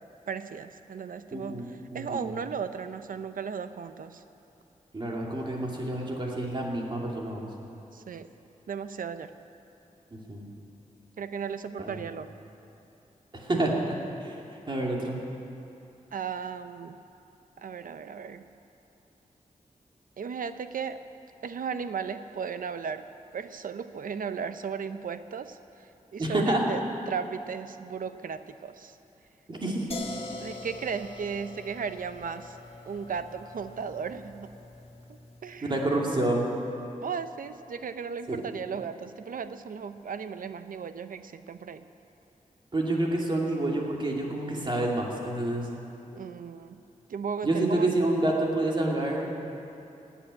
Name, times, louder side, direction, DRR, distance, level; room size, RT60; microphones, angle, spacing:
voice 1, 0.0-4.2 7.9-8.3 8.7-9.3 11.2-12.4 16.1-17.0 17.6-18.5 20.2-21.0 21.4-23.1 23.3-26.8 27.1-29.0 30.4-32.6 32.9-34.5 35.1-35.7 37.0-41.9 46.1-46.8 47.1-48.0, right 6 dB, 80° right, 11 dB, 0.7 m, -36 dB
voice 2, 1.3-2.3 4.9-7.5 10.1-10.5 11.8-12.0 13.3-14.4 14.7-15.2 26.2-26.7 29.5-30.0 35.6-36.5 38.3-38.4 42.7-45.7 47.4-49.3, right 1 dB, 35° right, -2 dB, 2.6 m, -28 dB
sound 1, 29.9-35.7, left 3 dB, 45° left, 1.8 m, -44 dB
17.0 x 8.5 x 9.7 m, 2.8 s
wide cardioid pair, 135°, 14 cm